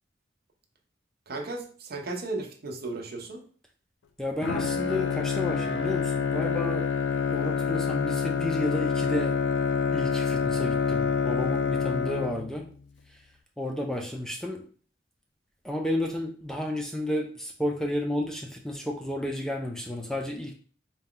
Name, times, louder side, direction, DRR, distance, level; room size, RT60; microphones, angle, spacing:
voice 1, 1.3-3.4, right 2 dB, 55° right, 3 dB, 0.7 m, -35 dB
voice 2, 4.2-6.9 7.3-9.3 9.9-12.6 13.6-14.6 15.6-20.5, left 1 dB, 5° left, 1 dB, 0.4 m, -31 dB
Bowed string instrument, 4.4-12.7, left 6 dB, 80° left, 0.4 m, -27 dB
4.1 x 2.3 x 3.7 m, 0.43 s
head